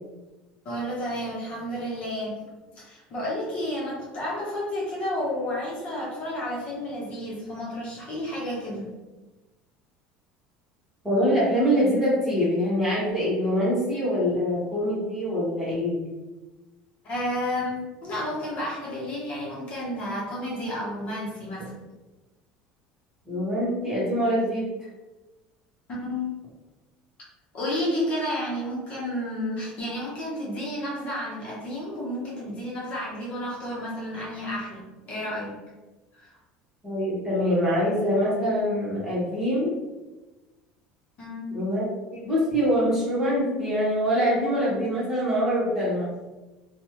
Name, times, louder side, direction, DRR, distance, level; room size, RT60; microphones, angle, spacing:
voice 1, 0.6-2.4 2.7-8.9 17.0-21.7 25.9-26.3 27.5-35.6 36.1-36.3 41.2-41.5, left 1 dB, 40° left, -5 dB, 1.0 m, -31 dB
voice 2, 11.0-16.0 23.2-24.7 36.8-39.7 41.5-46.1, equal, 10° right, -8 dB, 1.3 m, -24 dB
3.0 x 2.3 x 3.0 m, 1.1 s
cardioid pair, 140°, 3 cm